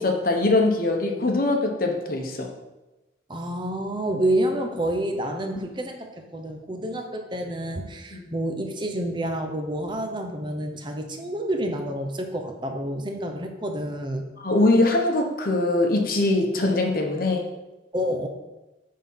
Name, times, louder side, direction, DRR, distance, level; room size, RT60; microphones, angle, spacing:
voice 1, 0.0-2.5 8.1-8.2 14.4-17.5, left 2 dB, 50° left, 3 dB, 1.0 m, -22 dB
voice 2, 3.3-14.2 17.9-18.3, right 1 dB, 25° right, 4 dB, 0.7 m, -28 dB
8.9 x 3.8 x 5.6 m, 1.0 s
head